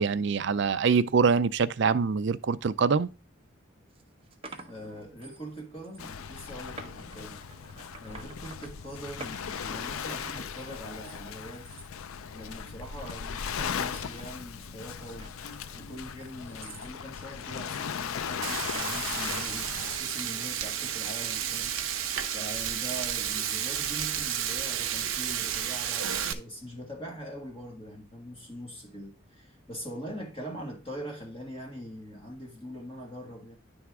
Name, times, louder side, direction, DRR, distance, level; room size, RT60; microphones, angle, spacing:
voice 1, 0.0-3.1, right 5 dB, 55° right, 0.4 m, -24 dB
sound 1, 3.3-3.4 3.9-5.5 5.8-6.1 6.7-8.7 9.2-11.2 11.5-11.9 12.4-12.7 13.5-16.9 18.7-19.6, right 3 dB, 25° right, 0.9 m, -49 dB
voice 2, 4.7-7.4 8.0-11.7 12.3-15.3 15.7-19.7 20.0-21.8 22.3-33.5, equal, 25° left, 1.8 m, -42 dB
Waves surf, 6.0-20.0, left 7 dB, 80° left, 0.5 m, -37 dB
Frying (food), 18.4-26.3, right 9 dB, 70° right, 0.8 m, -32 dB
10.5 x 3.6 x 4.7 m
head